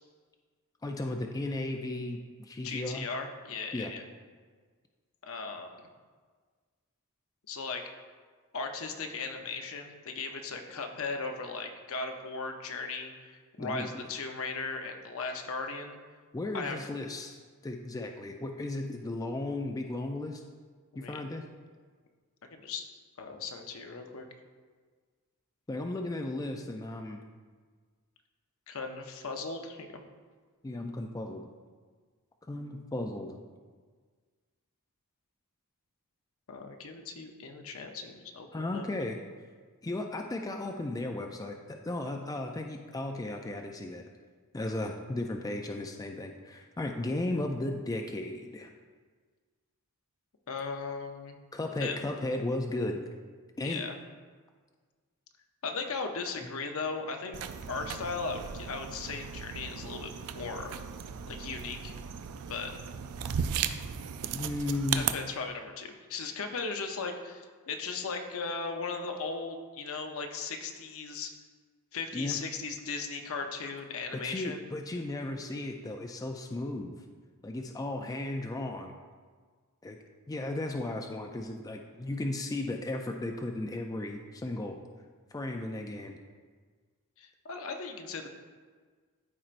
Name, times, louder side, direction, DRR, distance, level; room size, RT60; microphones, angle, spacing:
voice 1, 0.8-3.1 3.7-3.9 13.6-13.9 16.3-20.4 21.0-21.4 25.7-27.2 30.6-31.5 32.5-33.4 38.5-39.2 39.8-44.0 44.5-48.7 51.5-53.0 53.6-53.8 56.4-56.5 64.3-65.1 72.1-72.4 74.1-76.9 77.4-78.9 79.8-80.0 80.3-84.8 85.3-86.2, left 2 dB, 15° left, 3 dB, 0.3 m, -35 dB
voice 2, 2.6-4.0 5.2-5.8 7.5-7.9 8.5-16.0 16.5-16.8 20.9-21.2 22.5-22.9 23.2-24.2 28.7-29.9 36.5-38.8 50.5-51.4 51.8-52.0 53.6-54.0 55.6-57.4 57.7-60.7 61.3-61.9 62.5-62.7 64.9-71.3 71.9-74.6 87.2-88.3, left 4 dB, 65° left, 4 dB, 0.7 m, -37 dB
sound 1, 57.3-65.1, right 8 dB, 75° right, 0.4 m, -36 dB
13.0 x 4.4 x 2.5 m, 1.5 s
head